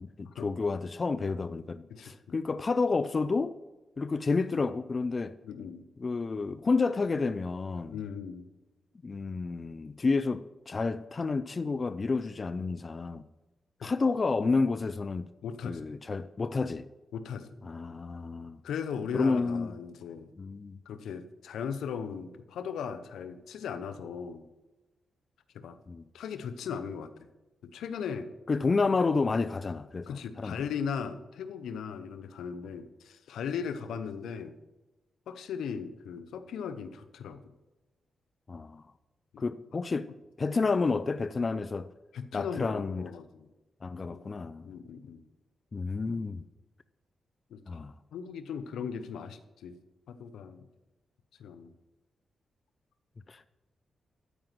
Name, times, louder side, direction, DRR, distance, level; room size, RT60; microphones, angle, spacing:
voice 1, 0.2-3.6 4.0-5.3 6.0-8.0 9.0-13.3 13.8-15.3 15.6-16.9 17.6-18.6 19.1-19.7 20.4-20.8 25.9-26.1 28.5-30.6 38.5-38.8 39.4-40.1 40.4-41.9 42.3-43.1 43.8-44.7 45.7-46.4 47.7-47.9 53.3-53.5, left 4 dB, 40° left, 0.5 m, -30 dB
voice 2, 5.4-5.8 7.9-8.5 13.8-13.9 15.4-15.8 17.1-17.5 18.6-20.3 20.9-24.4 25.5-25.8 26.1-27.1 27.6-28.3 30.1-34.5 35.3-37.4 39.3-39.4 42.1-43.5 44.1-44.2 44.6-45.2 47.5-47.8 48.1-49.8 50.1-50.6 51.4-51.7, left 7 dB, 90° left, 0.8 m, -38 dB
13.0 x 5.0 x 7.6 m
cardioid pair, 65°, 0 cm